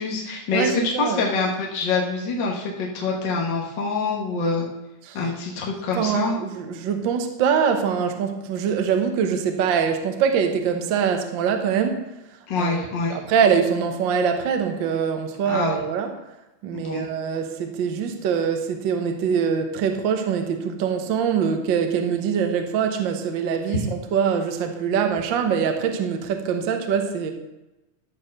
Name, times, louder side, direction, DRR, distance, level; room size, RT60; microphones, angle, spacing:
voice 1, 0.0-4.7 5.1-6.4 12.5-13.2 15.5-15.8 16.7-17.1 23.7-23.9, left 3 dB, 45° left, -2 dB, 1.7 m, -25 dB
voice 2, 0.5-1.3 5.1-5.2 5.9-12.1 12.6-12.8 13.1-16.1 16.6-27.3, right 7 dB, 65° right, 6 dB, 1.1 m, -23 dB
13.0 x 4.7 x 6.5 m, 0.99 s
omnidirectional pair, 3.5 m